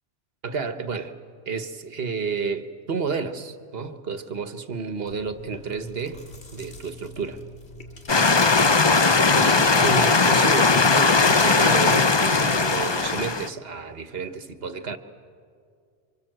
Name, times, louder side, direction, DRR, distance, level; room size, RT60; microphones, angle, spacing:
voice 1, 0.4-1.1 1.4-6.2 6.5-7.4 9.3-15.0, right 4 dB, 70° right, 9 dB, 1.5 m, -31 dB
Chewing mastication, 5.1-13.2, left 1 dB, 90° left, 2.6 m, -44 dB
sound 1, 8.1-13.5, left 4 dB, 30° left, 0.7 m, -19 dB
30.0 x 25.0 x 7.8 m, 2.2 s
omnidirectional pair, 1.1 m